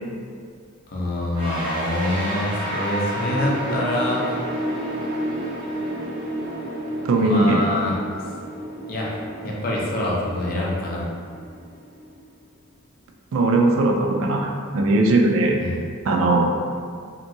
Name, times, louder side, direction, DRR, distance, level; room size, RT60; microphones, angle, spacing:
voice 1, 0.9-4.4 7.1-8.0 8.9-11.1 15.6-15.8, left 1 dB, 50° left, -4 dB, 0.5 m, -25 dB
sound 1, 1.3-12.2, equal, 25° right, 0.8 m, -31 dB
voice 2, 7.0-7.6 13.3-15.6 16.1-16.5, right 2 dB, 90° right, 2 dB, 0.4 m, -19 dB
2.8 x 2.5 x 2.6 m, 2.1 s
head